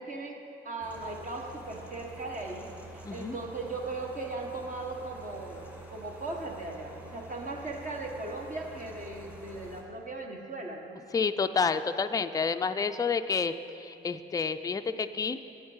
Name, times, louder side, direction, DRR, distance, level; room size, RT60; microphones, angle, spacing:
voice 1, 0.0-5.6 5.9-11.0, right 2 dB, 40° right, 1 dB, 1.4 m, -38 dB
sound 1, 0.8-9.8, right 2 dB, 5° right, 1.9 m, -47 dB
voice 2, 3.0-3.4 11.1-15.4, left 5 dB, 20° left, 8 dB, 0.4 m, -29 dB
9.3 x 8.9 x 5.5 m, 2.7 s
cardioid pair, 90°, 20 cm